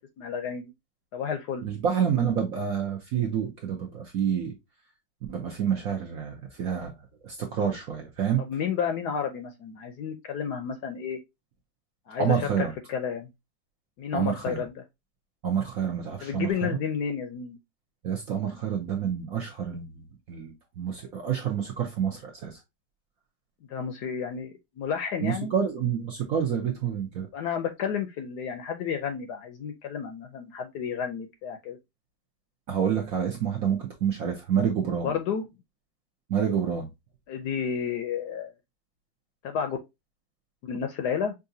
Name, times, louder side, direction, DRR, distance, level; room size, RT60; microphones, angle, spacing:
voice 1, 0.2-0.7 1.1-1.7 8.4-11.2 12.1-13.3 14.0-14.8 16.2-17.6 23.7-25.5 27.3-31.8 35.0-35.5 37.3-38.5 39.4-39.8 40.6-41.4, left 7 dB, 70° left, 1.0 m, -31 dB
voice 2, 1.6-4.5 5.3-6.9 7.2-8.4 12.2-12.7 14.1-14.6 15.4-16.7 18.0-22.6 25.2-27.3 32.7-35.1 36.3-36.9, right 8 dB, 65° right, 0.9 m, -28 dB
5.6 x 2.6 x 2.6 m
omnidirectional pair, 2.2 m